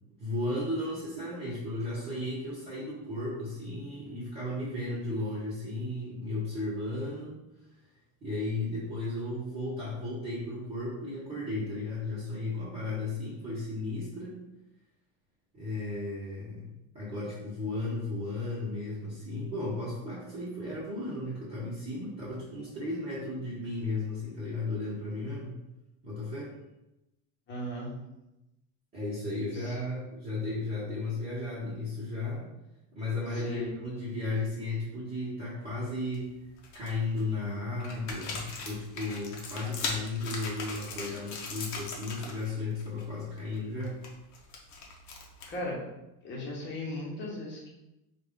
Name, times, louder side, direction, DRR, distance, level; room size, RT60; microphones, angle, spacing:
voice 1, 0.2-7.4 8.2-14.4 15.5-25.5 26.0-26.5 28.9-32.5 32.9-36.3 36.7-44.0, left 2 dB, 25° right, -11 dB, 1.3 m, -34 dB
voice 2, 27.5-27.9 33.4-33.7 45.5-45.8 46.2-47.7, left 1 dB, 25° left, -3 dB, 1.1 m, -36 dB
sound 1, 35.7-36.2 36.6-37.2 37.8-42.5 42.8-43.0 43.4-45.7, left 4 dB, 45° left, 0.8 m, -39 dB
4.7 x 2.5 x 3.7 m, 0.93 s
cardioid pair, 170°, 40 cm